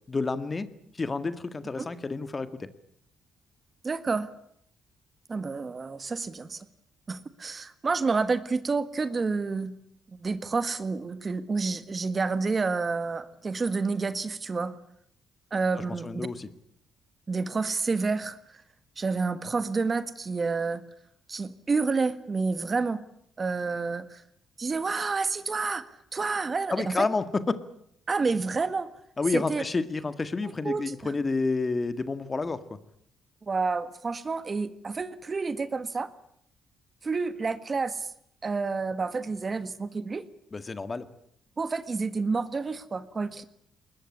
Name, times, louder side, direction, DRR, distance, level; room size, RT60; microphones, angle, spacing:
voice 1, 0.1-0.7 0.9-2.7 15.8-16.5 26.7-27.6 29.2-32.6 40.5-41.1, left 3 dB, 30° left, 12 dB, 1.8 m, -29 dB
voice 2, 3.8-4.3 5.3-6.7 7.1-9.7 10.2-14.8 15.5-16.3 17.3-18.4 19.0-20.8 21.3-23.0 23.4-24.2 24.6-27.0 28.1-28.9 29.3-29.6 30.4-30.9 33.5-36.1 37.0-38.1 38.4-40.2 41.6-43.4, right 4 dB, 35° right, 13 dB, 1.6 m, -29 dB
21.0 x 20.5 x 9.9 m, 0.69 s
cardioid pair, 90°, 0 cm